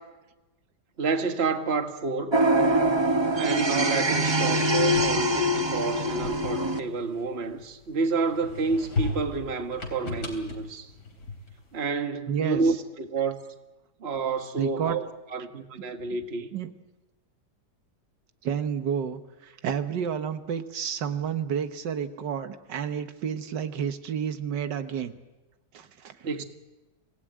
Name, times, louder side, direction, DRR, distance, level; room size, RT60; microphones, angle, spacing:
voice 1, 1.0-2.4 3.3-10.9 11.7-13.4 14.0-16.5 26.2-26.4, right 4 dB, 40° right, 1.7 m, -29 dB
sound 1, 2.3-6.8, right 1 dB, 20° right, 1.1 m, -24 dB
sound 2, 4.5-7.8 8.3-11.7, left 3 dB, 70° left, 4.2 m, -36 dB
voice 2, 12.3-12.6 14.6-15.0 16.5-16.7 18.4-25.1 25.7-26.3, right 8 dB, 85° right, 1.8 m, -30 dB
26.5 x 17.5 x 9.0 m
omnidirectional pair, 1.8 m